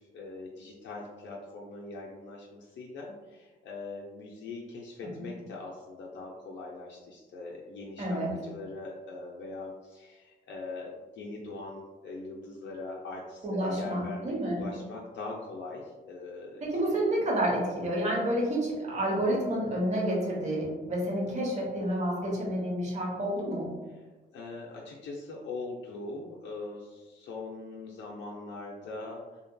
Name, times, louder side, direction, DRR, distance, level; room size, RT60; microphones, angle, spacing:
voice 1, 0.0-17.0 24.3-29.4, left 3 dB, 65° left, -3 dB, 0.5 m, -42 dB
voice 2, 8.0-8.3 13.4-14.7 16.6-23.7, right 1 dB, 35° right, -3 dB, 0.9 m, -29 dB
2.8 x 2.5 x 2.2 m, 1.2 s
cardioid pair, 90°, 20 cm